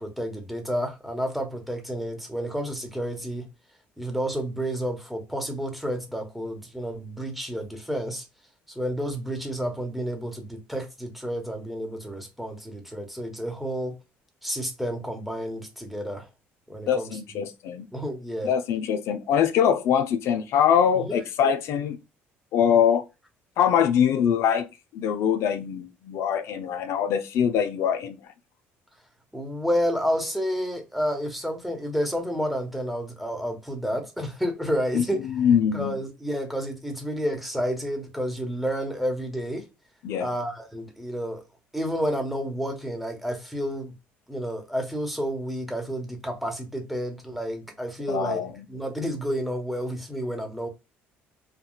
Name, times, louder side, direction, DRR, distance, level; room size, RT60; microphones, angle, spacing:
voice 1, 0.0-3.4 4.0-8.3 8.7-13.9 14.4-16.3 16.7-17.4 17.9-18.5 20.9-21.2 29.3-35.3 35.7-39.6 40.2-41.4 41.7-43.9 44.3-48.4 48.7-50.7, equal, ahead, 1.0 m, -30 dB
voice 2, 16.9-17.9 18.4-22.0 22.5-23.0 23.6-24.7 24.9-28.2 34.9-35.9 40.0-40.3 48.1-48.5, left 8 dB, 70° left, 0.4 m, -23 dB
3.5 x 2.3 x 2.2 m
supercardioid pair, 90°, 5 cm